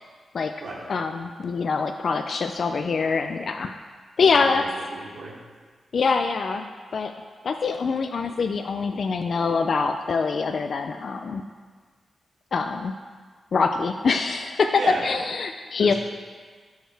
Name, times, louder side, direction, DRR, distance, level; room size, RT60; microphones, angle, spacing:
voice 1, 0.9-3.8 4.2-4.6 5.9-6.6 6.9-7.1 7.4-11.4 12.5-12.9 13.5-15.9, left 4 dB, 55° left, 5 dB, 0.4 m, -24 dB
voice 2, 4.3-5.4 14.7-15.0 15.8-15.9, right 2 dB, 60° right, -5 dB, 2.7 m, -34 dB
17.0 x 6.4 x 3.4 m, 1.5 s
wide cardioid pair, 140°, 0 cm